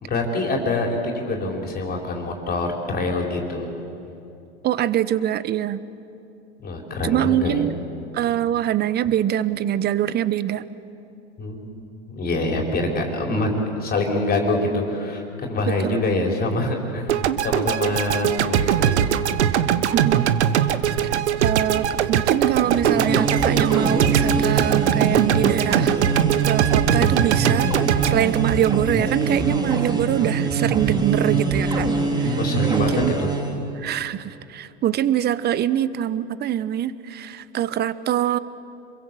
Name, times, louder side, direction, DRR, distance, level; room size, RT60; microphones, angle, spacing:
voice 1, 0.0-3.7 6.6-7.6 11.4-13.5 13.8-19.0 32.4-33.3, left 2 dB, 25° left, 1 dB, 4.5 m, -25 dB
voice 2, 4.6-5.8 7.0-7.7 8.1-10.6 15.8-16.0 19.9-20.3 21.0-21.1 21.4-26.0 26.4-31.9 32.2-32.4 32.7-33.1 33.7-38.4, right 11 dB, 30° right, 16 dB, 0.9 m, -24 dB
sound 1, 17.1-29.3, right 9 dB, 75° right, 1.3 m, -21 dB
sound 2, 22.6-33.6, right 4 dB, 10° right, 2.5 m, -24 dB
27.0 x 22.5 x 7.8 m, 2.7 s
hypercardioid pair, 105°, 34 cm